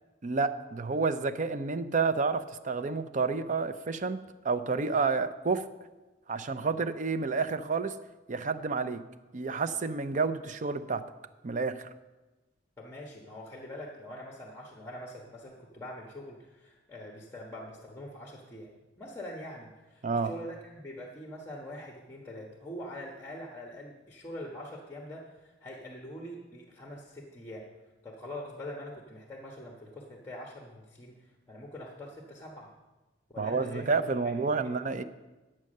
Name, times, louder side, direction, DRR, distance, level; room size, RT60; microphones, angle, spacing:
voice 1, 0.2-4.2 4.4-5.7 6.3-8.0 8.3-9.0 9.3-11.0 11.4-11.9 20.0-20.3 33.4-35.0, right 4 dB, 45° right, 11 dB, 0.5 m, -29 dB
voice 2, 12.8-18.7 19.0-27.7 28.0-32.7 33.3-34.0 34.6-34.7, left 1 dB, 15° left, 0 dB, 1.3 m, -44 dB
10.5 x 7.5 x 6.5 m, 1.1 s
head